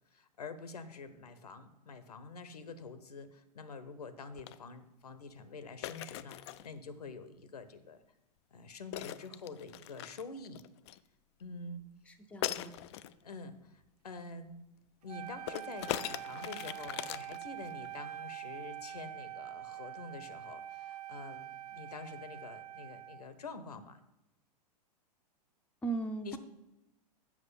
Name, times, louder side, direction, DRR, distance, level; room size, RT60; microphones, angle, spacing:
voice 1, 0.1-8.0 8.5-10.6 11.4-11.8 13.2-14.6 15.0-24.0 26.2-26.4, left 3 dB, 70° left, 12 dB, 0.9 m, -47 dB
sound 1, 4.3-4.6 5.8-6.7 8.9-11.0 12.4-13.1 15.5-17.9, left 13 dB, 40° left, 0.4 m, -40 dB
voice 2, 12.1-12.7 25.8-26.4, right 3 dB, 5° left, 4 dB, 0.7 m, -38 dB
Wind instrument woodwind instrument, 15.1-23.3, right 12 dB, 70° right, 0.5 m, -45 dB
7.3 x 6.0 x 7.5 m, 0.93 s
figure-of-eight pair, 100°, 21 cm